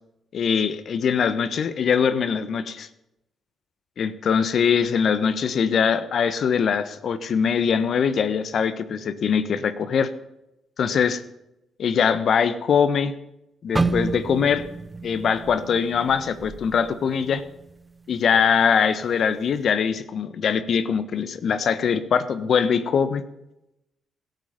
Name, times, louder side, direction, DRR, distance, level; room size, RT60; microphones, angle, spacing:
voice 1, 0.3-2.9 4.0-10.1 10.8-11.2 11.8-13.1 13.6-14.6 15.0-17.4 18.1-23.2, left 7 dB, 60° left, 12 dB, 1.3 m, -22 dB
sound 1, 13.7-17.8 18.1-18.4 19.0-19.4, right 3 dB, 20° right, 0.8 m, -30 dB
17.0 x 8.1 x 9.3 m, 0.90 s
supercardioid pair, 60°, 0 cm